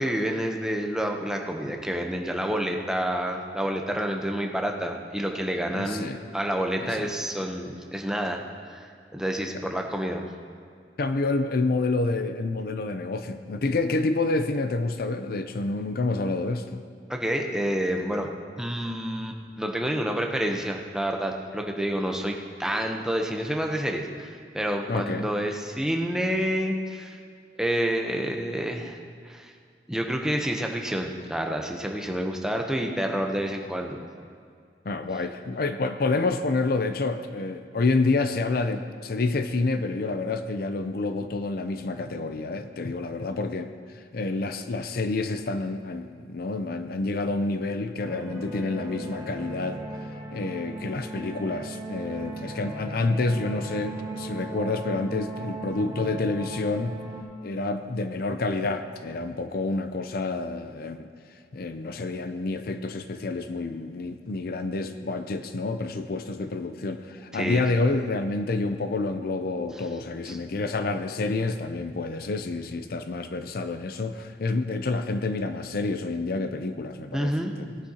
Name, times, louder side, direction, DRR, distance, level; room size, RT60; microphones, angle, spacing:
voice 1, 0.0-8.4 8.7-8.8 9.1-10.2 17.1-18.3 18.6-27.2 27.6-29.0 29.2-29.5 29.9-34.0 67.3-67.6 70.2-70.4 77.1-77.5, equal, 5° right, 2 dB, 0.8 m, -28 dB
voice 2, 5.7-6.2 7.0-7.1 11.0-16.8 24.9-25.3 34.9-43.7 44.1-49.8 50.3-57.0 57.4-61.1 61.5-77.3 77.6-77.7, left 3 dB, 55° left, 9 dB, 0.5 m, -28 dB
sound 1, 48.0-57.2, right 2 dB, 25° right, 2.8 m, -37 dB
18.0 x 9.9 x 2.9 m, 2.2 s
head